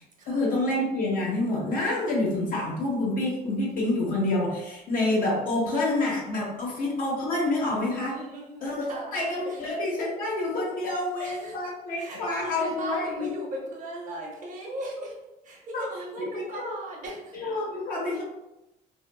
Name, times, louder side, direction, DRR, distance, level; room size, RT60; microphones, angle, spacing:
voice 1, 0.3-8.2 8.6-13.3 15.7-15.8 16.2-16.6 17.3-18.2, left 2 dB, 55° left, -3 dB, 0.9 m, -28 dB
voice 2, 8.1-9.2 9.4-9.6 11.2-11.6 12.0-15.1 15.4-17.3, right 1 dB, 50° right, -2 dB, 0.9 m, -38 dB
2.9 x 2.2 x 2.2 m, 0.95 s
cardioid pair, 110°, 17 cm